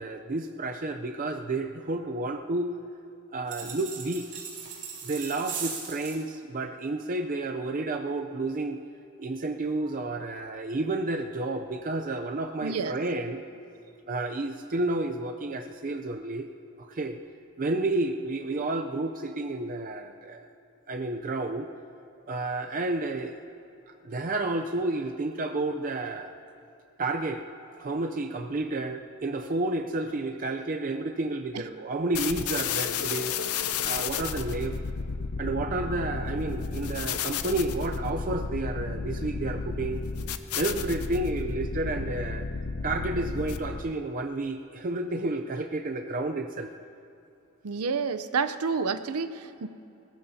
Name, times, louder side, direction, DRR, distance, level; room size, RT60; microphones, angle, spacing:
voice 1, 0.0-2.7 3.3-4.3 5.0-8.8 9.2-13.4 14.1-16.5 16.8-17.2 17.6-20.5 20.9-21.7 22.3-23.4 23.9-26.4 27.0-27.4 27.8-33.4 33.8-34.8 35.4-40.0 40.6-42.5 42.8-46.7, right 2 dB, 40° right, 5 dB, 0.5 m, -31 dB
sound 1, 3.5-6.2, right 6 dB, 55° right, 3.1 m, -38 dB
voice 2, 12.6-12.9 47.6-49.7, right 5 dB, 85° right, 12 dB, 0.6 m, -29 dB
sound 2, 32.1-43.9, left 5 dB, 80° left, 0.6 m, -32 dB
21.0 x 19.5 x 2.8 m, 2.7 s
head